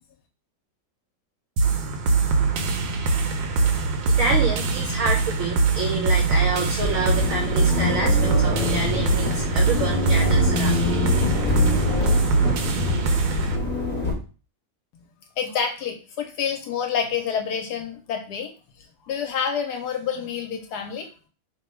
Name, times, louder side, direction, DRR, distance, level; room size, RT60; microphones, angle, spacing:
sound 1, 1.6-13.6, right 4 dB, 85° right, 1.3 m, -22 dB
voice 1, 3.5-10.8, right 3 dB, 65° right, 1 dB, 0.8 m, -28 dB
sound 2, 6.8-14.1, left 2 dB, 10° left, 0.5 m, -25 dB
voice 2, 15.4-18.5 19.1-21.1, left 7 dB, 70° left, 4 dB, 1.0 m, -28 dB
3.2 x 2.2 x 4.2 m, 0.35 s
omnidirectional pair, 1.9 m